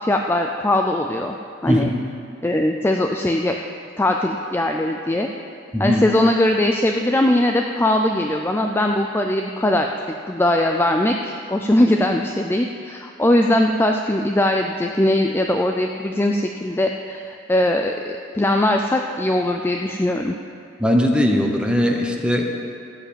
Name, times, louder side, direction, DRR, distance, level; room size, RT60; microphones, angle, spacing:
voice 1, 0.0-1.4 1.6-1.9 2.4-3.6 4.0-5.3 5.8-9.9 10.3-20.4, left 1 dB, 10° left, 3 dB, 0.4 m, -20 dB
voice 2, 20.8-22.6, equal, 5° right, 1 dB, 1.0 m, -19 dB
14.0 x 4.9 x 8.9 m, 2.4 s
head